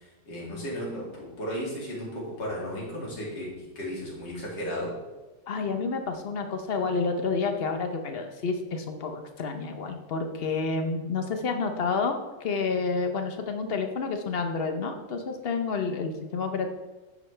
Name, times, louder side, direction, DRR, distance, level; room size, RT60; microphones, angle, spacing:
voice 1, 0.3-4.9, equal, 75° left, -5 dB, 3.2 m, -34 dB
voice 2, 5.5-16.7, left 4 dB, 60° left, 6 dB, 0.6 m, -29 dB
10.0 x 7.2 x 3.3 m, 1.2 s
omnidirectional pair, 1.9 m